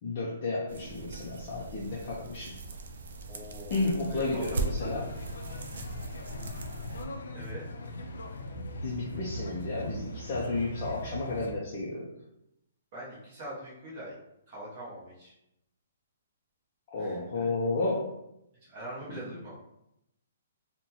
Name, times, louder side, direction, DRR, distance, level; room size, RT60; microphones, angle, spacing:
voice 1, 0.0-2.6 3.7-5.1 8.8-12.1 16.9-18.1 19.1-19.3, left 3 dB, 25° left, -5 dB, 0.4 m, -32 dB
sound 1, 0.7-7.1, right 3 dB, 60° right, 0.4 m, -39 dB
voice 2, 3.3-3.7 4.1-4.6 7.3-7.6 12.9-14.1 14.5-15.3 17.0-17.5 18.6-19.6, right 1 dB, 25° right, -6 dB, 0.8 m, -43 dB
sound 2, 4.4-11.5, left 1 dB, 85° left, 0.5 m, -39 dB
3.7 x 2.1 x 2.8 m, 0.82 s
hypercardioid pair, 180°, 0 cm